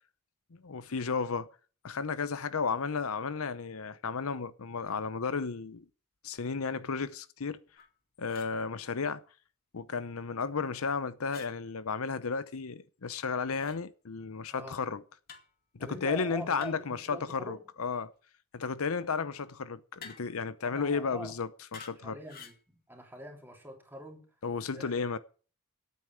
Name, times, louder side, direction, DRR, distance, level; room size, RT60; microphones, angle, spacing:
voice 1, 0.6-1.5 1.8-5.8 6.2-7.6 8.2-9.2 9.7-15.0 15.7-18.1 18.5-22.2 24.4-25.2, left 5 dB, 70° left, 0.7 m, -33 dB
sound 1, 7.8-7.9 8.3-8.6 11.3-11.5 13.5-13.8 15.3-15.5 16.6-17.0 20.0-20.4 21.7-22.0 22.3-22.6, left 6 dB, 45° left, 2.4 m, -49 dB
voice 2, 15.8-17.6 20.6-21.4 22.0-24.3 24.7-24.9, right 1 dB, 10° right, 3.0 m, -44 dB
9.7 x 8.7 x 7.5 m
head